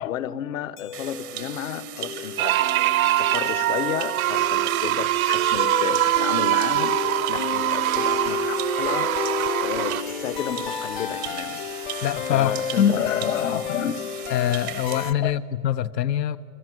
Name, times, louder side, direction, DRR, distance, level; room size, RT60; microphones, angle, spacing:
voice 1, 0.0-2.6 3.2-7.0 7.3-9.1 9.6-11.6 12.3-13.9 15.2-15.3, left 10 dB, 55° left, 1.2 m, -31 dB
sound 1, 0.8-15.1, left 7 dB, 30° left, 0.7 m, -32 dB
sound 2, 0.9-15.1, right 14 dB, 15° right, 0.5 m, -38 dB
sound 3, 2.4-10.0, right 15 dB, 60° right, 0.6 m, -23 dB
voice 2, 12.0-12.9 14.3-16.4, left 10 dB, 85° left, 0.9 m, -23 dB
29.5 x 25.0 x 7.7 m
hypercardioid pair, 170°, 49 cm